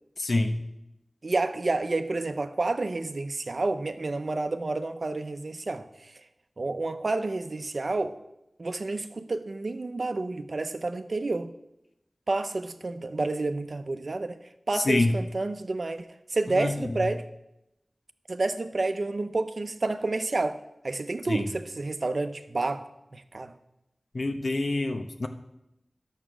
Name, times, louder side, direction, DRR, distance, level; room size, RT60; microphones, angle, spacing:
voice 1, 0.2-0.6 14.7-15.1 16.6-17.1 21.3-21.4 24.1-25.3, left 2 dB, 70° left, 0.9 m, -27 dB
voice 2, 1.2-5.9 6.6-8.1 8.6-11.5 12.3-14.4 14.7-17.2 18.3-22.9 23.1-23.5, right 2 dB, 65° right, 0.7 m, -29 dB
11.0 x 7.3 x 6.2 m
wide cardioid pair, 70°, 0 cm